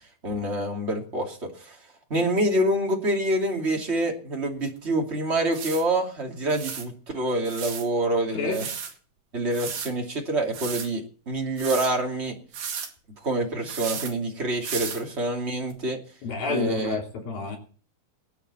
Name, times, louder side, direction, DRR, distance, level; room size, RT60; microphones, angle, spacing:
voice 1, 0.2-1.8 2.1-8.6 9.3-12.3 13.2-16.0 16.5-17.0, right 1 dB, 20° right, 2.3 m, -26 dB
sound 1, 4.8-4.9 5.5-5.8 6.5-6.9 7.5-7.9 8.5-8.9 9.5-9.9 10.5-10.9 11.6-11.9 12.5-12.9 13.7-14.1 14.6-15.0 15.7-15.8, right 7 dB, 70° right, 3.9 m, -34 dB
voice 2, 8.3-8.7 16.2-17.6, left 4 dB, 65° left, 4.7 m, -29 dB
22.0 x 9.5 x 4.3 m
omnidirectional pair, 4.4 m